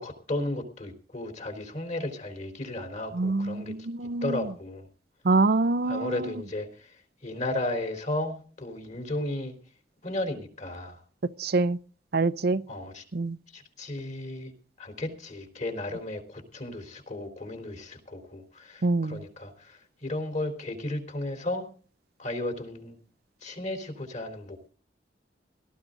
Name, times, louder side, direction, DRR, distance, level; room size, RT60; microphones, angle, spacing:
voice 1, 0.0-3.7 4.2-4.9 5.8-9.6 10.0-11.0 12.7-13.0 13.5-14.5 14.8-21.7 22.2-23.0 23.4-24.7, left 1 dB, 40° left, 3.8 m, -34 dB
voice 2, 3.1-4.4 5.2-6.2 11.4-11.8 12.1-12.6 13.1-13.4 18.8-19.2, right 3 dB, 60° right, 0.6 m, -25 dB
18.0 x 13.5 x 3.8 m
head